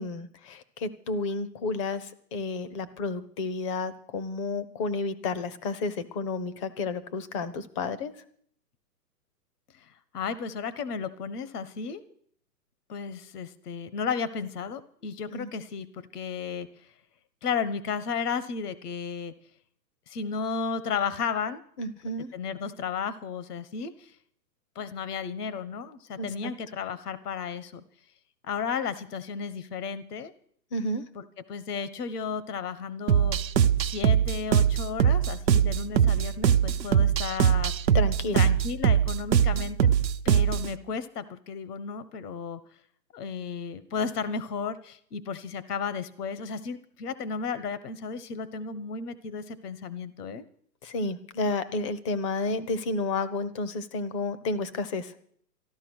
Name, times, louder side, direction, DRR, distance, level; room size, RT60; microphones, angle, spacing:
voice 1, 0.0-8.1 15.3-15.5 21.8-22.3 26.2-26.3 30.7-31.0 37.9-38.5 39.5-39.6 50.8-55.2, left 3 dB, 20° left, 13 dB, 0.6 m, -31 dB
voice 2, 10.1-12.0 12.9-15.9 16.1-16.7 17.4-19.3 20.1-21.6 22.3-24.1 24.7-27.8 28.5-30.3 31.1-33.4 33.8-37.7 38.3-39.8 40.2-42.6 43.1-50.4, left 6 dB, 65° left, 14 dB, 1.2 m, -33 dB
sound 1, 33.1-40.7, right 8 dB, 90° right, 1.0 m, -22 dB
14.0 x 12.0 x 6.2 m, 0.65 s
hypercardioid pair, 145°, 49 cm